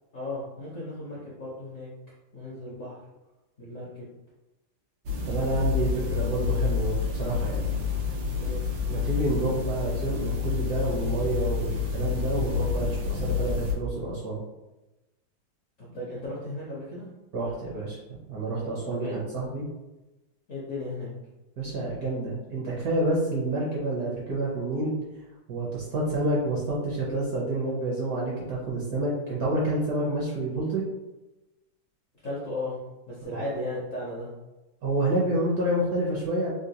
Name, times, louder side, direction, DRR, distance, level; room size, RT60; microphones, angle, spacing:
voice 1, 0.1-1.9 2.3-3.0 3.6-4.1 8.4-8.6 15.8-17.1 18.9-19.2 20.5-21.1 32.2-32.8 33.1-34.3, left 1 dB, 65° left, -7 dB, 0.8 m, -35 dB
sound 1, 5.1-13.7, left 6 dB, 85° right, 1.5 m, -28 dB
voice 2, 5.3-7.6 8.9-14.4 17.3-18.0 18.3-19.7 21.6-25.0 25.5-30.8 33.3-33.4 34.8-36.5, right 2 dB, 65° right, -5 dB, 1.0 m, -28 dB
3.8 x 2.3 x 2.7 m, 1.0 s
omnidirectional pair, 2.2 m